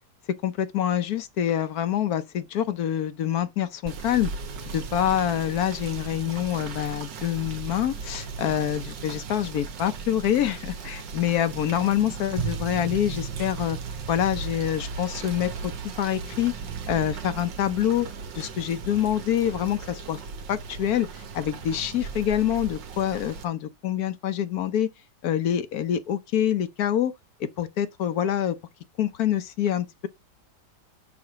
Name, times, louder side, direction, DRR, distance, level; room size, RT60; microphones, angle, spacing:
voice 1, 0.4-4.3 4.7-13.8 14.1-15.7 16.0-16.5 16.9-18.1 18.3-20.2 20.5-21.1 21.3-24.9 25.2-27.1 27.4-28.6 29.0-30.1, left 10 dB, 65° left, 1.0 m, -26 dB
Rain / Motor vehicle (road), 3.8-23.4, right 5 dB, 70° right, 1.7 m, -36 dB
6.1 x 4.8 x 4.7 m
omnidirectional pair, 2.1 m